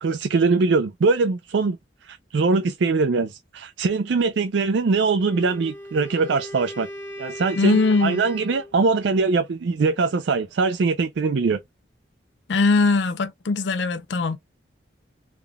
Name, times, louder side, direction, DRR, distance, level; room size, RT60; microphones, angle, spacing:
voice 1, 0.0-1.8 2.0-6.9 7.2-11.6, right 4 dB, 75° right, 0.4 m, -22 dB
Wind instrument woodwind instrument, 5.2-8.7, equal, 15° left, 0.8 m, -37 dB
voice 2, 7.6-8.2 12.5-14.4, left 3 dB, 80° left, 0.5 m, -20 dB
3.6 x 3.4 x 2.2 m
head